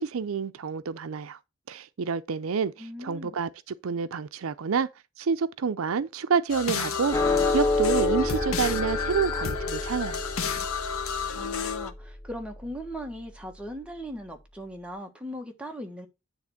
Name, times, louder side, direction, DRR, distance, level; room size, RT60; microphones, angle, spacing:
voice 1, 0.0-1.4 1.7-4.9 5.2-10.2, right 6 dB, 80° right, 0.5 m, -28 dB
voice 2, 2.8-3.4 11.3-16.1, equal, 5° right, 1.3 m, -39 dB
sound 1, 6.5-11.9, left 5 dB, 90° left, 1.1 m, -31 dB
sound 2, 7.1-13.7, left 3 dB, 15° left, 0.5 m, -30 dB
9.8 x 3.4 x 5.7 m
head